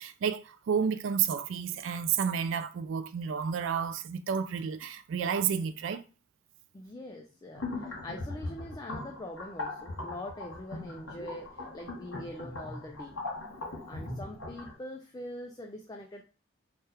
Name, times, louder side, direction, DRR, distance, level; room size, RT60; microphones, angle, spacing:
voice 1, 0.0-6.0, right 7 dB, 65° right, 0.3 m, -31 dB
voice 2, 6.7-13.2 13.9-16.2, left 1 dB, 20° left, 0.3 m, -43 dB
sound 1, 7.5-14.8, left 2 dB, 75° left, 1.5 m, -40 dB
3.3 x 2.3 x 4.3 m
head